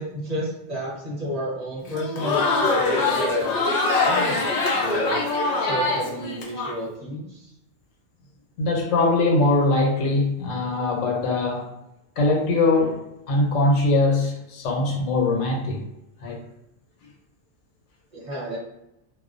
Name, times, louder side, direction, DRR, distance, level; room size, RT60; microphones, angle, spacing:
voice 1, 0.0-3.7 4.0-5.2 5.6-7.5 18.1-18.6, equal, 35° right, -6 dB, 0.9 m, -32 dB
Crowd, 1.9-6.7, left 3 dB, 55° left, 0.4 m, -23 dB
voice 2, 8.6-11.7 12.2-15.8 16.2-16.4, left 2 dB, 75° left, 1 dB, 1.0 m, -22 dB
2.4 x 2.2 x 2.5 m, 0.85 s
omnidirectional pair, 1.3 m